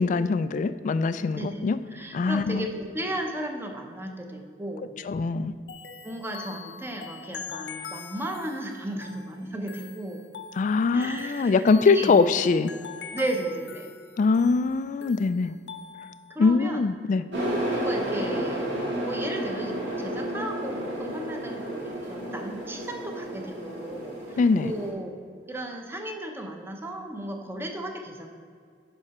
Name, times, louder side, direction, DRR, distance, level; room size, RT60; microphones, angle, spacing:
voice 1, 0.0-1.8 2.1-2.7 5.0-5.5 10.6-12.7 14.2-15.5 16.4-17.2 24.4-24.7, left 4 dB, 45° left, 13 dB, 0.3 m, -22 dB
voice 2, 1.9-4.9 6.0-10.2 10.9-11.6 11.9-12.2 13.1-13.9 16.3-16.8 17.7-18.7 19.1-25.1 25.5-28.3, right 1 dB, 15° right, 3 dB, 0.8 m, -35 dB
sound 1, 5.7-16.4, left 6 dB, 75° left, 0.6 m, -43 dB
sound 2, 17.3-24.9, right 1 dB, 80° right, 2.0 m, -31 dB
9.8 x 5.6 x 4.2 m, 2.1 s
head